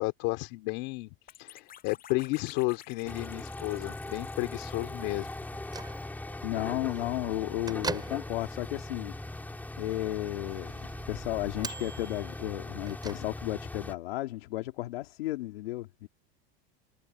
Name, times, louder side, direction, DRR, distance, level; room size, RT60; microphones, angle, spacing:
voice 1, 0.0-5.3, left 25 dB, 55° left, 3.1 m, -32 dB
sound 1, 1.3-6.1, left 11 dB, 30° left, 7.0 m, -53 dB
sound 2, 3.0-13.9, left 2 dB, 5° left, 5.0 m, -40 dB
Bell / Microwave oven, 5.4-13.7, right 4 dB, 15° right, 7.5 m, -43 dB
voice 2, 6.4-9.1 9.8-16.1, left 17 dB, 85° left, 2.9 m, -34 dB
supercardioid pair, 145°, 29 cm